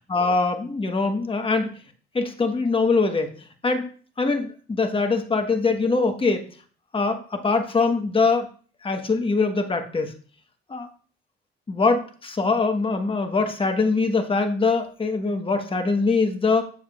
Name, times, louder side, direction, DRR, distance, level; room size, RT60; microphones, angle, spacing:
voice 1, 0.1-1.7 2.1-3.3 3.6-3.9 4.2-6.4 6.9-8.5 8.8-10.1 10.7-10.9 11.7-16.6, left 4 dB, 25° left, 5 dB, 1.2 m, -23 dB
7.3 x 7.2 x 2.4 m, 0.43 s
cardioid pair, 90°, 20 cm